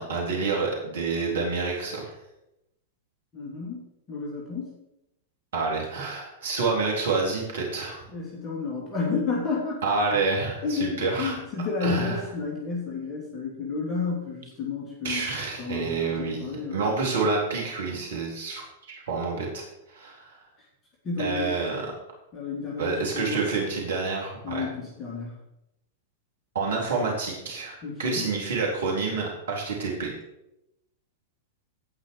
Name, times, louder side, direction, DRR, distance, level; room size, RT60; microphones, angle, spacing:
voice 1, 0.0-2.1 5.5-8.0 9.8-11.4 11.8-12.2 15.0-20.4 21.2-21.9 22.8-24.6 26.5-30.1, right 4 dB, 70° right, -2 dB, 4.1 m, -28 dB
voice 2, 3.3-3.8 4.1-4.7 8.1-9.8 10.6-15.3 15.6-16.8 21.0-21.5 22.3-22.9 23.1-23.4 24.4-25.4 27.8-28.3, left 4 dB, 25° left, -4 dB, 3.0 m, -31 dB
16.5 x 5.9 x 4.9 m, 0.87 s
figure-of-eight pair, 100°, 0 cm